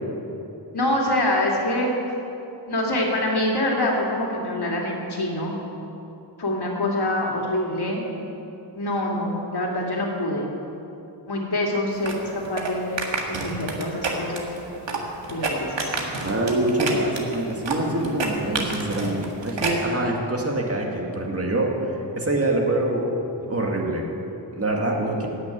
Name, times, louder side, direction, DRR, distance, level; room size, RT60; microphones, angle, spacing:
voice 1, 0.7-1.9 2.7-5.5 6.4-8.0 8.7-10.5 11.3-13.0 13.3-14.5 15.2-16.2 18.4-18.6, left 1 dB, 60° left, -1 dB, 2.6 m, -25 dB
sound 1, 12.0-19.8, right 3 dB, 80° right, 1.8 m, -29 dB
voice 2, 16.2-23.1 23.5-24.0 24.5-25.3, right 1 dB, 35° right, 0 dB, 1.9 m, -25 dB
15.0 x 6.8 x 9.3 m, 2.9 s
wide cardioid pair, 120°, 43 cm